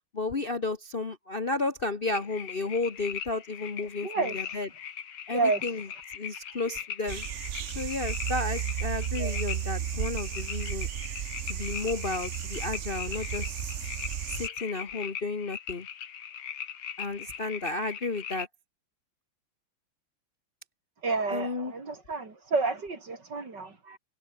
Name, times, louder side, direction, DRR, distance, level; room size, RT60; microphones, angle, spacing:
voice 1, 0.1-4.7 5.3-5.9 6.1-7.3 7.7-10.9 11.4-13.9 14.3-15.9 17.0-18.5 21.3-21.7, left 3 dB, 30° left, 1.3 m, -33 dB
sound 1, 2.0-18.5, left 8 dB, 85° left, 2.5 m, -40 dB
voice 2, 4.0-4.4 5.3-5.6 9.2-9.4 21.0-24.0, right 3 dB, 55° right, 4.2 m, -30 dB
sound 2, 7.1-14.5, right 10 dB, 85° right, 0.6 m, -34 dB
omnidirectional pair, 2.3 m